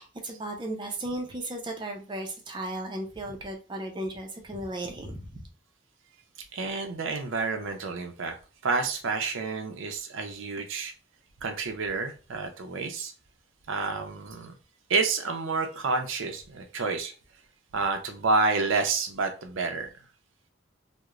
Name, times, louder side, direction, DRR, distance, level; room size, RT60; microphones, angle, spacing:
voice 1, 0.0-5.5, right 1 dB, 25° right, 2 dB, 0.4 m, -35 dB
voice 2, 6.5-8.3 8.6-10.9 11.4-13.1 13.7-14.5 14.9-17.1 17.7-19.9, right 4 dB, 75° right, 5 dB, 0.5 m, -29 dB
3.0 x 2.0 x 2.3 m, 0.35 s
head